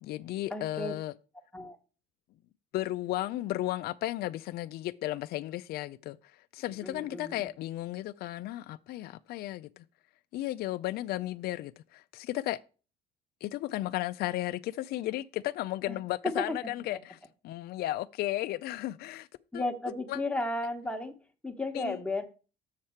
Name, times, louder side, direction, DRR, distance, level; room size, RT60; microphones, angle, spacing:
voice 1, 0.0-1.1 2.7-9.8 10.3-12.6 13.4-17.2 17.4-19.3 19.5-19.6 20.1-20.2 21.7-22.0, left 15 dB, 65° left, 0.4 m, -34 dB
voice 2, 0.5-0.9 1.5-1.8 6.8-7.5 15.9-16.0 16.4-16.6 16.9-17.0 19.5-21.2 21.4-22.2, left 2 dB, 5° left, 1.2 m, -34 dB
7.2 x 6.6 x 4.4 m
cardioid pair, 110°, 17 cm